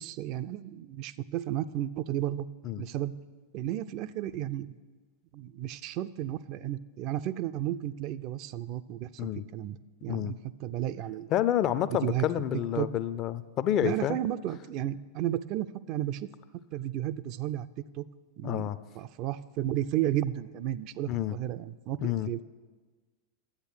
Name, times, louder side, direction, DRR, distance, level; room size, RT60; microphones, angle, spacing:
voice 1, 0.0-2.5 2.8-3.1 3.5-4.8 5.3-11.3 11.9-12.3 12.8-12.9 13.8-16.3 16.7-17.7 17.9-18.1 18.4-22.4, right 12 dB, 40° right, 12 dB, 0.3 m, -33 dB
voice 2, 11.3-14.2 18.4-18.8 21.1-21.4 22.0-22.3, left 11 dB, 35° left, 15 dB, 0.4 m, -29 dB
11.0 x 8.1 x 6.2 m, 1.4 s
figure-of-eight pair, 90°, 0 cm